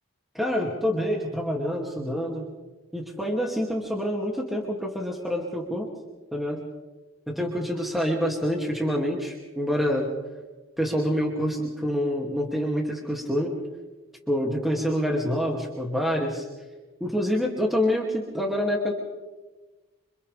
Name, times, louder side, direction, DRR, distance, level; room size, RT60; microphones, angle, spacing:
voice 1, 0.3-2.5 2.9-5.9 6.3-6.6 7.3-10.1 10.8-13.6 14.3-16.5 17.0-18.9, equal, ahead, -2 dB, 2.4 m, -27 dB
29.0 x 26.5 x 3.4 m, 1.2 s
head